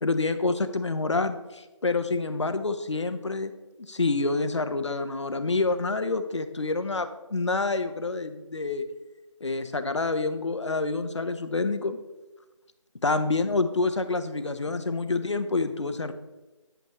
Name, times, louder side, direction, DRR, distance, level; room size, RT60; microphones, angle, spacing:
voice 1, 0.0-3.5 3.9-8.8 9.4-12.0 13.0-16.1, left 3 dB, 65° left, 9 dB, 0.9 m, -27 dB
10.0 x 8.0 x 3.1 m, 1.1 s
figure-of-eight pair, 165°, 16 cm